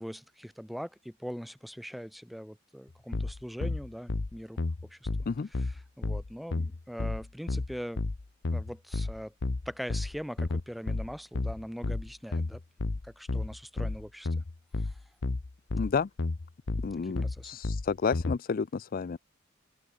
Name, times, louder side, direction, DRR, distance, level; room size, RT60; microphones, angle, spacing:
voice 1, 0.0-4.6 4.9-5.1 5.5-8.0 8.5-9.3 9.7-12.6 13.0-14.3 14.8-14.9 17.0-17.5, equal, ahead, 1.8 m, -41 dB
sound 1, 3.1-18.4, left 2 dB, 60° left, 0.8 m, -32 dB
voice 2, 15.7-16.1 16.8-19.2, left 5 dB, 45° left, 0.4 m, -31 dB
head